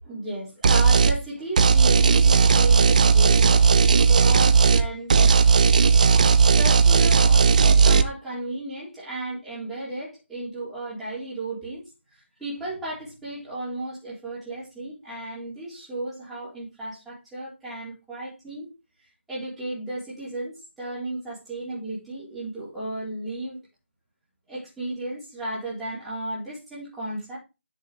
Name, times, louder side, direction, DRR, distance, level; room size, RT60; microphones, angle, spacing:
voice 1, 0.0-5.1 6.6-18.7 19.3-23.6 24.5-27.4, right 1 dB, ahead, 3.7 m, -34 dB
sound 1, 0.6-1.2 1.6-4.8 5.1-8.0, right 5 dB, 35° right, 0.7 m, -16 dB
10.0 x 6.5 x 3.3 m
figure-of-eight pair, 165°, 7 cm